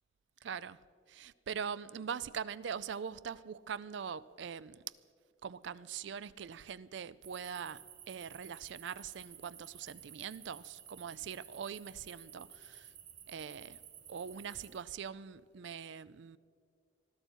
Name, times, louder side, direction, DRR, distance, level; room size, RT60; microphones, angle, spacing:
voice 1, 0.4-0.8 1.1-4.8 5.4-12.9 13.3-13.8 14.1-16.4, right 7 dB, 60° right, 0.4 m, -42 dB
sound 1, 7.2-14.8, right 9 dB, 80° right, 1.7 m, -54 dB
20.5 x 13.5 x 4.5 m
head